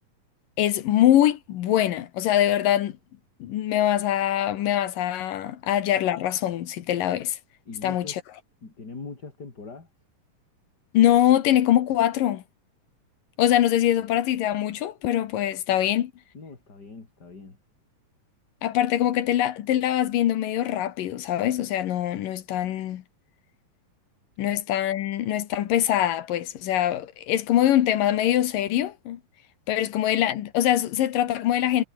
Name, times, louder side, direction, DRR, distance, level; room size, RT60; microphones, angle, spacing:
voice 1, 0.6-2.9 3.4-7.4 7.8-8.2 10.9-12.4 13.4-16.1 18.6-23.0 24.4-29.2 29.7-31.8, left 12 dB, 70° left, 2.9 m, -23 dB
voice 2, 7.7-8.2 8.6-9.9 16.3-17.6, left 4 dB, 25° left, 4.2 m, -41 dB
omnidirectional pair, 4.2 m